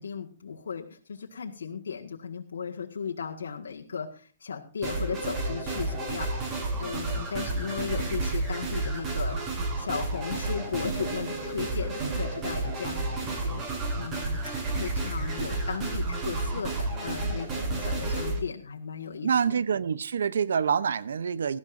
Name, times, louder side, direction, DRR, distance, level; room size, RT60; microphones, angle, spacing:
voice 1, 0.0-9.4 9.8-14.5 14.8-19.6, left 6 dB, 80° left, 1.8 m, -36 dB
sound 1, 4.8-18.4, right 2 dB, 30° right, 6.9 m, -31 dB
voice 2, 19.2-21.6, right 7 dB, 75° right, 0.8 m, -26 dB
18.5 x 13.0 x 2.6 m
hypercardioid pair, 135°, 0 cm